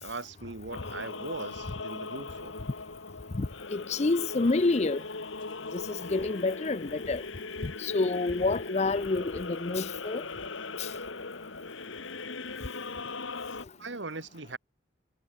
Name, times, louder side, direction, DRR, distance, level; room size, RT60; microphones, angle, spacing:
voice 1, 0.0-2.7 13.8-14.6, right 3 dB, 65° right, 1.9 m, -40 dB
sound 1, 0.7-13.6, left 3 dB, 75° left, 2.2 m, -39 dB
voice 2, 3.3-5.0 5.7-7.2 7.6-10.3 10.8-10.9, left 3 dB, 35° left, 0.5 m, -28 dB
head